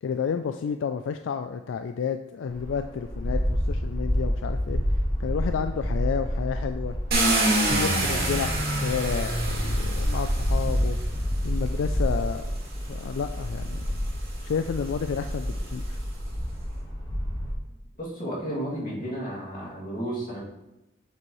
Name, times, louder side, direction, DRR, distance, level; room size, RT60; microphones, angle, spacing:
voice 1, 0.0-4.8 5.2-7.0 7.7-11.0 11.4-12.5 12.9-13.8 14.4-16.0, left 6 dB, 80° left, 8 dB, 0.3 m, -31 dB
sound 1, 2.5-17.5, equal, 20° left, 1.3 m, -29 dB
Car, 7.1-11.2 12.2-12.3 12.8-16.1, right 1 dB, 50° right, 2.2 m, -28 dB
sound 2, 7.7-13.9, equal, 5° right, 0.3 m, -39 dB
voice 2, 18.0-20.4, right 1 dB, 45° left, -6 dB, 2.3 m, -32 dB
7.4 x 6.1 x 3.1 m, 0.95 s
head